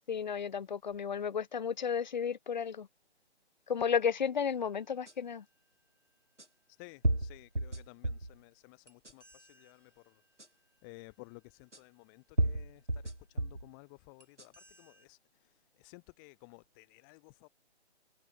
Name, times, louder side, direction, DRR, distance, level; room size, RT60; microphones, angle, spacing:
voice 1, 0.1-2.9 3.7-5.4, left 7 dB, 40° left, 3.5 m, -33 dB
sound 1, 5.1-5.2 6.4-6.5 7.0-8.4 8.9-9.4 10.4-10.5 11.7-11.8 12.4-13.7 14.2-14.8, right 1 dB, 85° right, 5.7 m, -33 dB
voice 2, 6.7-10.2 10.8-17.5, left 33 dB, 15° left, 7.6 m, -56 dB
figure-of-eight pair, 145°, 34 cm